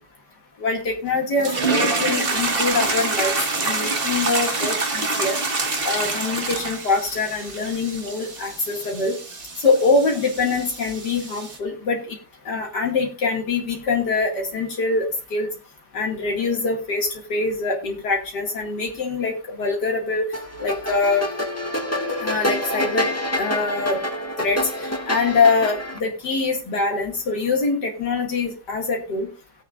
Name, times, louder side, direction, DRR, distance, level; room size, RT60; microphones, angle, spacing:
voice 1, 0.6-3.3 3.6-5.4 5.8-9.2 9.6-12.0 12.5-15.1 15.3-15.5 15.9-20.2 20.6-21.3 22.2-23.1 23.4-24.0 24.4-24.6 25.1-29.3, left 3 dB, 80° left, 0 dB, 2.7 m, -23 dB
sound 1, 1.4-11.6, right 3 dB, 35° right, 1.6 m, -26 dB
sound 2, 20.3-26.0, left 1 dB, 10° left, 1.7 m, -27 dB
19.0 x 8.4 x 2.5 m, 0.30 s
omnidirectional pair, 1.8 m